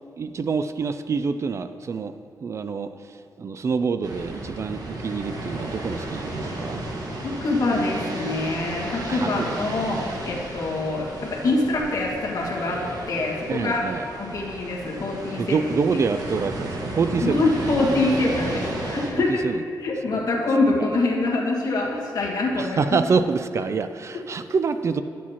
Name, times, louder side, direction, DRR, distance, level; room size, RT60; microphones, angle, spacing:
voice 1, 0.2-2.1 2.4-6.8 9.1-9.6 13.5-14.1 15.4-17.5 17.8-17.9 19.1-19.6 20.1-20.3 20.8-20.9 22.6-25.0, right 5 dB, 40° right, 10 dB, 0.3 m, -26 dB
sound 1, 4.0-19.1, right 1 dB, 60° right, 1.3 m, -33 dB
voice 2, 7.2-12.8 13.1-13.8 14.2-15.7 17.2-19.5 19.8-23.0, left 2 dB, 55° left, -2 dB, 1.5 m, -25 dB
11.0 x 7.4 x 2.8 m, 2.4 s
wide cardioid pair, 120°, 7 cm